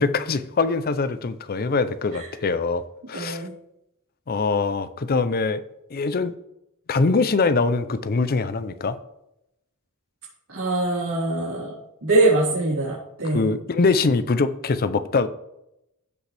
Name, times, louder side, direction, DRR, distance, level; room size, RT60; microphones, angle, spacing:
voice 1, 0.0-3.5 4.3-5.6 5.9-6.3 6.9-9.0 13.3-15.3, left 4 dB, 45° left, 12 dB, 0.5 m, -23 dB
voice 2, 3.1-3.5 10.5-13.5, right 2 dB, 85° right, -10 dB, 3.9 m, -23 dB
16.0 x 5.3 x 3.4 m, 0.85 s
head